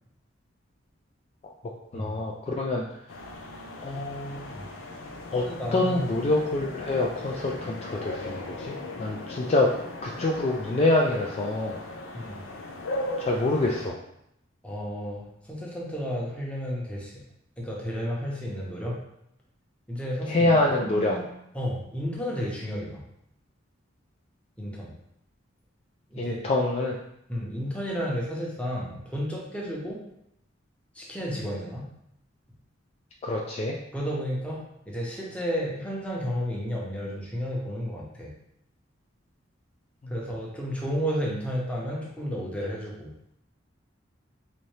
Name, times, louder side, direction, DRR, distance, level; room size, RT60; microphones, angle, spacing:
voice 1, 1.9-2.9 3.8-4.5 5.3-5.5 5.7-9.7 10.0-11.8 13.2-14.0 20.3-21.2 26.2-26.9 33.2-33.8 40.0-40.1, left 2 dB, 35° left, -1 dB, 0.3 m, -26 dB
sound 1, 3.1-13.9, left 2 dB, 80° left, 0.6 m, -38 dB
voice 2, 5.4-6.1 12.1-12.4 14.6-17.2 17.6-19.0 19.9-20.5 20.8-21.2 21.5-23.0 24.6-24.9 26.1-26.5 27.3-30.0 30.9-31.9 33.9-38.3 40.1-43.1, equal, 5° left, -4 dB, 0.8 m, -32 dB
4.1 x 2.7 x 3.2 m, 0.79 s
head